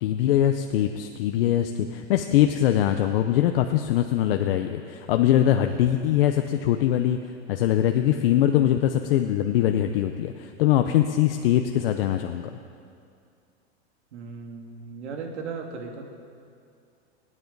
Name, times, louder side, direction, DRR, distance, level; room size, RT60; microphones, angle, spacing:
voice 1, 0.0-7.2 7.5-12.5, left 11 dB, 55° left, 6 dB, 0.7 m, -22 dB
voice 2, 14.1-16.1, right 5 dB, 85° right, 2 dB, 2.2 m, -36 dB
25.0 x 9.7 x 4.0 m, 2.4 s
supercardioid pair, 155°, 34 cm